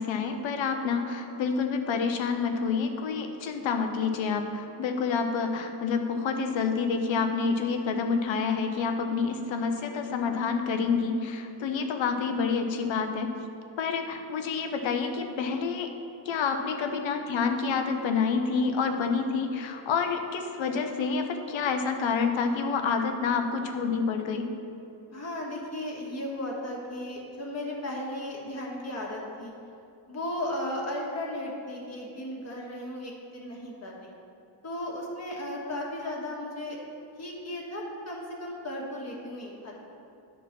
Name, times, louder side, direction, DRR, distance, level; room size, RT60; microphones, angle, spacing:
voice 1, 0.0-13.3 13.8-15.9 16.3-24.5, left 5 dB, 75° left, 6 dB, 0.9 m, -28 dB
voice 2, 25.1-29.5 30.1-34.1 34.6-36.8 37.2-39.7, left 1 dB, 35° left, -2 dB, 1.6 m, -35 dB
10.5 x 4.4 x 5.9 m, 2.7 s
cardioid pair, 140°, 46 cm